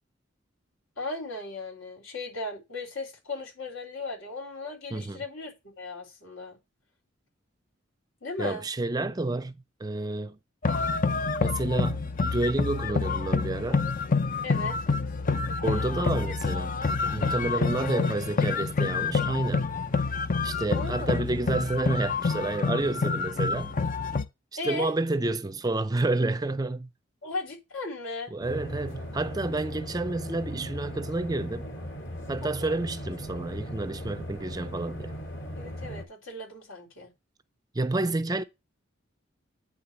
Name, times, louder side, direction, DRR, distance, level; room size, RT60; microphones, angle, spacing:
voice 1, 1.0-6.6 8.2-8.7 12.9-13.0 14.4-14.8 17.8-17.9 20.7-21.2 24.6-24.9 27.2-28.3 32.4-32.8 35.6-37.1, left 2 dB, 85° left, 4.2 m, -37 dB
voice 2, 4.9-5.2 8.4-10.4 11.4-13.9 15.6-16.7 17.1-19.7 20.4-23.8 24.6-26.9 28.3-31.7 32.3-35.1 37.7-38.4, right 2 dB, 20° right, 0.5 m, -29 dB
sound 1, 10.6-24.2, left 4 dB, 40° left, 0.6 m, -27 dB
sound 2, 28.4-36.0, equal, 65° left, 2.5 m, -38 dB
9.6 x 3.5 x 7.0 m
head